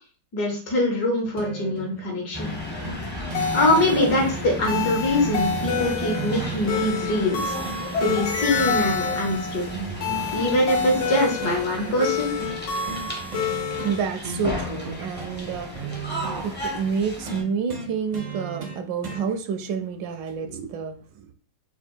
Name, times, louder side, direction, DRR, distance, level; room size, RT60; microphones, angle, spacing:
voice 1, 0.3-2.5 3.1-9.6 10.3-12.3, left 1 dB, 60° left, 0 dB, 1.9 m, -24 dB
sound 1, 1.4-2.0 2.8-3.0 3.3-3.5 3.8-6.8 7.7-8.3 8.5-9.4 9.7-11.6 12.4-12.6 12.9-13.1 13.3-14.0 14.2-16.4 17.3-19.2 20.3-20.4, right 3 dB, 60° right, 0.4 m, -35 dB
sound 2, 2.3-17.4, equal, 10° left, 0.6 m, -34 dB
sound 3, 3.3-14.0, left 6 dB, 90° left, 1.7 m, -29 dB
voice 2, 12.9-13.4 13.8-16.0 16.3-21.3, right 6 dB, 80° right, 7 dB, 1.3 m, -29 dB
4.4 x 2.3 x 4.4 m, 0.40 s
omnidirectional pair, 2.0 m